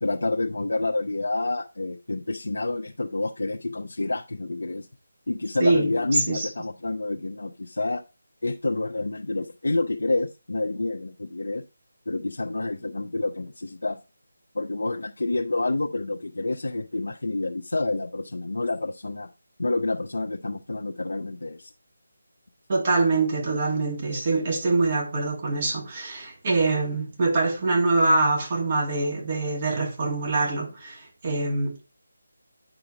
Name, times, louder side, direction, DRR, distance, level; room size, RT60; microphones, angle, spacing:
voice 1, 0.0-4.9 5.3-8.0 8.4-11.6 12.1-14.0 14.5-19.3 19.6-21.7, left 2 dB, 80° left, 0.8 m, -28 dB
voice 2, 5.6-6.5 22.7-31.8, right 3 dB, 35° right, 2.3 m, -24 dB
10.0 x 5.1 x 2.9 m
figure-of-eight pair, 165°, 0 cm